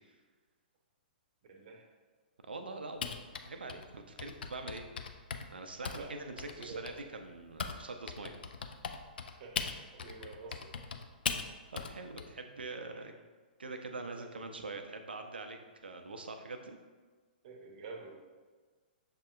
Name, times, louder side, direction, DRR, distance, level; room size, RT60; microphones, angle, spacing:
voice 1, 1.5-1.9 5.8-7.0 9.2-9.6 9.9-10.7 12.9-13.1 14.2-14.3 17.4-18.2, right 4 dB, 50° right, 2 dB, 0.7 m, -48 dB
voice 2, 2.4-4.9 5.5-8.3 11.7-13.1 13.6-16.8, right 3 dB, 80° right, 6 dB, 0.5 m, -44 dB
Typing, 3.0-7.8 8.1-12.2, left 6 dB, 70° left, 0.4 m, -39 dB
6.7 x 2.8 x 2.4 m, 1.4 s
hypercardioid pair, 120°, 5 cm